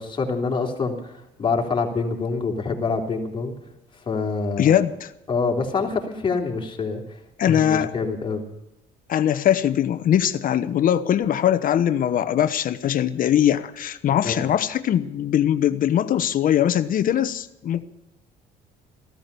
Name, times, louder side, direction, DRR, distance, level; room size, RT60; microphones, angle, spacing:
voice 1, 0.0-3.5 4.1-4.7 5.3-7.2 7.4-8.4 14.1-14.4, left 4 dB, 30° left, 1 dB, 3.6 m, -26 dB
voice 2, 4.6-5.1 7.4-7.9 9.1-17.8, left 10 dB, 55° left, 12 dB, 1.0 m, -21 dB
15.5 x 13.5 x 6.9 m, 0.87 s
cardioid pair, 110°, 17 cm